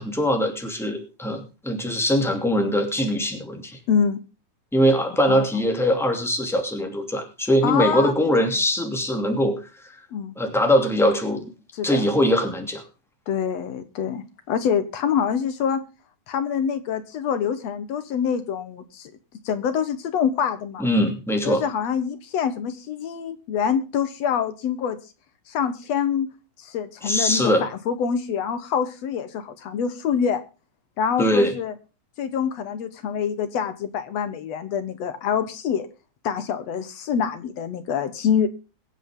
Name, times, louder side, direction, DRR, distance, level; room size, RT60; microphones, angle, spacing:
voice 1, 0.0-3.8 4.7-9.9 10.4-11.5 11.8-12.8 20.8-21.6 27.0-27.7 31.2-31.5, equal, ahead, 4 dB, 2.2 m, -22 dB
voice 2, 3.9-4.2 5.3-5.6 7.6-8.6 10.1-10.4 11.8-12.1 13.3-15.8 16.3-19.1 19.5-20.9 21.4-25.0 25.5-26.3 26.6-30.4 31.0-31.7 32.2-35.9 36.2-38.5, left 7 dB, 65° left, 11 dB, 2.2 m, -25 dB
22.5 x 8.0 x 3.7 m, 0.32 s
omnidirectional pair, 3.4 m